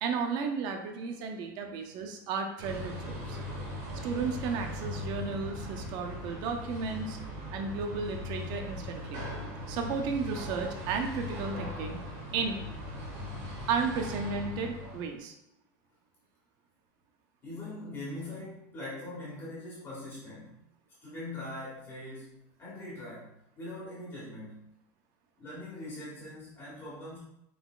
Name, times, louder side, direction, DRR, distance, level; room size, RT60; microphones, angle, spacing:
voice 1, 0.0-3.4 4.0-7.2 7.5-9.2 9.7-12.0 12.3-12.6 13.7-15.3, right 5 dB, 40° right, 4 dB, 0.5 m, -33 dB
sound 1, 2.6-15.1, left 1 dB, 65° right, 1.6 m, -39 dB
voice 2, 17.4-20.5 21.0-24.7 25.4-27.2, left 1 dB, 20° left, -9 dB, 1.6 m, -42 dB
5.8 x 3.8 x 2.4 m, 0.79 s
supercardioid pair, 175°, 11 cm